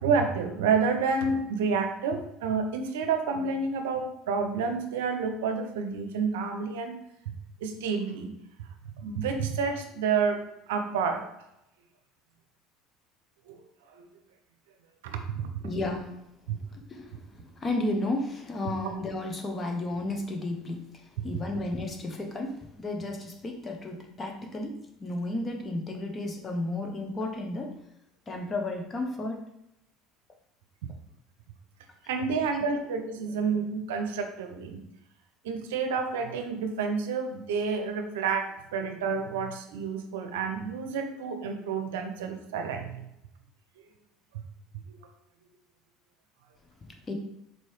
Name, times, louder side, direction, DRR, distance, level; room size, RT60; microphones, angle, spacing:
voice 1, 0.0-7.0 7.6-8.3 9.0-10.4 10.7-11.2 13.5-13.6 14.0-14.1 15.0-15.5 32.1-34.8 35.4-43.0 44.9-45.0, right 5 dB, 80° right, 6 dB, 0.5 m, -29 dB
voice 2, 15.6-16.2 16.7-27.7 28.3-29.4 32.3-32.4 47.1-47.2, left 2 dB, 25° left, 3 dB, 0.8 m, -33 dB
4.2 x 2.7 x 3.1 m, 0.84 s
hypercardioid pair, 80°, 0 cm